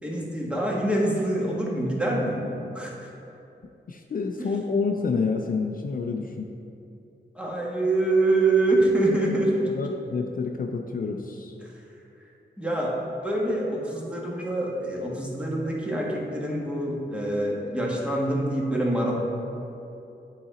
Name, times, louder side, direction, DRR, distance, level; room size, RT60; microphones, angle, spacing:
voice 1, 0.0-2.4 2.7-3.1 4.4-4.5 7.3-9.7 11.6-11.7 12.6-19.1, right 2 dB, 5° right, -4 dB, 1.4 m, -25 dB
voice 2, 3.9-6.5 9.8-11.5, left 4 dB, 50° left, 3 dB, 0.5 m, -28 dB
8.7 x 4.0 x 4.0 m, 2.8 s
wide cardioid pair, 75°, 19 cm